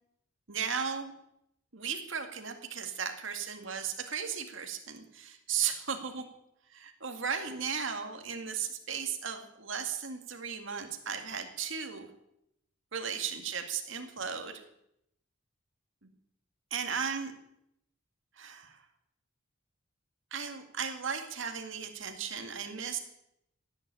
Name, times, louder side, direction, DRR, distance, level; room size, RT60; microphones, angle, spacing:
voice 1, 0.5-1.1 1.7-6.3 6.7-12.1 12.9-14.6 16.7-17.3 18.4-18.9 20.3-23.0, right 7 dB, 65° right, 5 dB, 2.2 m, -36 dB
16.5 x 9.9 x 8.9 m, 0.79 s
head